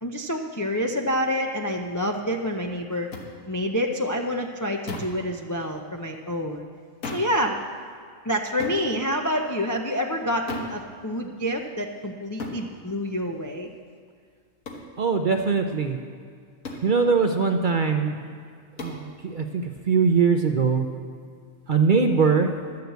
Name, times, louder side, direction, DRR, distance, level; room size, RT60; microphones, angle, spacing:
voice 1, 0.0-3.1 3.5-6.7 7.1-7.6 8.2-13.7, equal, 30° left, 2 dB, 0.3 m, -27 dB
sound 1, 3.1-3.3 4.9-5.2 7.0-7.4 8.6-8.8 10.5-10.8 12.4-12.6 14.6-14.9 16.6-16.9 18.8-19.0, left 3 dB, 80° left, 1.7 m, -35 dB
voice 2, 15.0-16.0 16.8-18.1 18.8-20.8 21.7-22.5, right 5 dB, 50° right, 5 dB, 0.6 m, -21 dB
11.5 x 6.8 x 8.0 m, 2.1 s
omnidirectional pair, 1.4 m